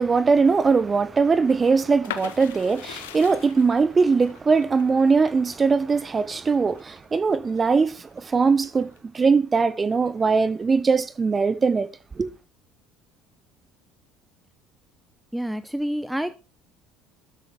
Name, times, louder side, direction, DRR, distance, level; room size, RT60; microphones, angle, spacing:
voice 1, 0.0-11.9 12.2-12.3, right 4 dB, 25° right, 1.1 m, -21 dB
sound 1, 2.0-7.7 8.1-9.0, left 13 dB, 75° left, 0.9 m, -40 dB
voice 2, 15.3-16.3, equal, 5° right, 0.6 m, -28 dB
12.5 x 9.0 x 3.7 m
figure-of-eight pair, 60°, 0 cm